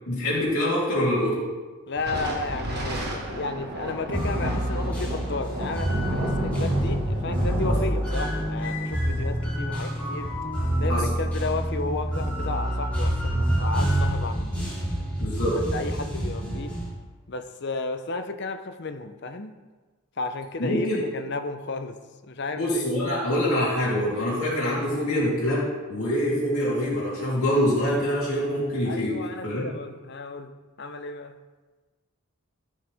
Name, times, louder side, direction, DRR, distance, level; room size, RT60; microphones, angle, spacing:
voice 1, 0.1-1.4 7.7-7.8 10.9-11.1 15.2-15.6 20.6-21.0 22.5-29.7, equal, 75° left, -8 dB, 3.1 m, -25 dB
voice 2, 1.9-10.3 10.8-14.6 15.7-16.8 17.3-19.5 20.2-20.9 21.1-22.0 22.2-22.8 28.9-30.5 30.8-31.4, left 3 dB, 50° left, 8 dB, 0.7 m, -33 dB
Thunder, 2.0-10.7, right 1 dB, 45° right, 1.7 m, -33 dB
sound 1, 4.1-16.9, equal, 5° left, 3.6 m, -27 dB
15.0 x 6.5 x 3.5 m, 1.3 s
head